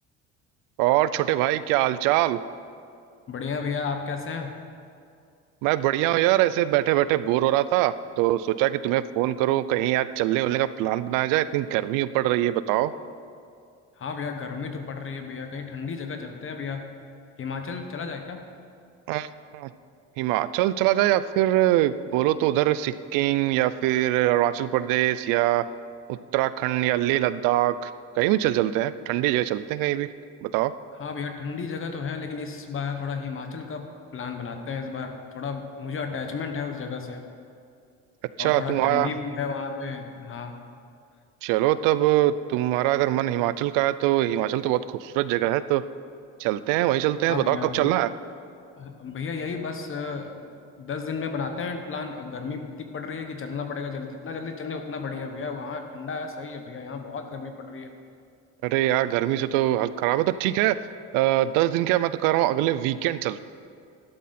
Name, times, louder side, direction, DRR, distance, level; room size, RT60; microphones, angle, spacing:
voice 1, 0.8-2.4 5.6-12.9 19.1-19.3 19.5-19.7 20.2-25.6 26.1-27.9 28.2-30.1 30.4-30.7 38.4-39.1 41.4-45.8 46.4-48.1 58.6-60.8 61.1-63.4, right 14 dB, 85° right, 15 dB, 0.5 m, -23 dB
voice 2, 3.3-4.6 14.0-16.9 17.4-18.5 31.0-37.2 38.4-40.6 47.3-48.0 48.8-57.9, left 5 dB, 40° left, 6 dB, 1.4 m, -33 dB
12.0 x 11.5 x 4.3 m, 2.4 s
supercardioid pair, 95°, 32 cm